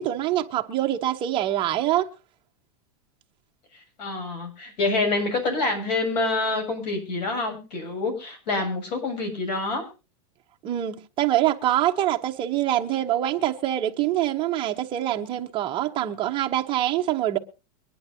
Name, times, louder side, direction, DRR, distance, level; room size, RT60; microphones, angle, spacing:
voice 1, 0.0-2.1 10.6-17.4, right 13 dB, 25° right, 0.9 m, -25 dB
voice 2, 3.7-9.9, left 3 dB, 85° left, 7.2 m, -27 dB
23.5 x 10.5 x 2.8 m
supercardioid pair, 165°, 21 cm